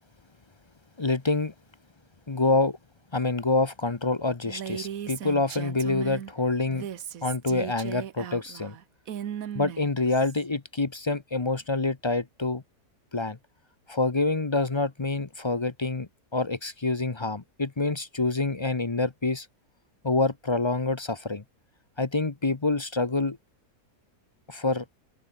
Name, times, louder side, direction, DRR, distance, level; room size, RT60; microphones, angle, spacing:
voice 1, 1.0-1.5 2.3-2.8 3.1-6.9 7.2-8.8 9.5-12.6 13.1-13.4 13.9-19.5 20.0-21.4 22.0-23.4 24.5-24.8, left 3 dB, 25° left, 0.7 m, -27 dB
Female speech woman speaking, 4.5-6.3 6.7-10.4, right 9 dB, 60° right, 1.4 m, -37 dB
open air
omnidirectional pair, 1.7 m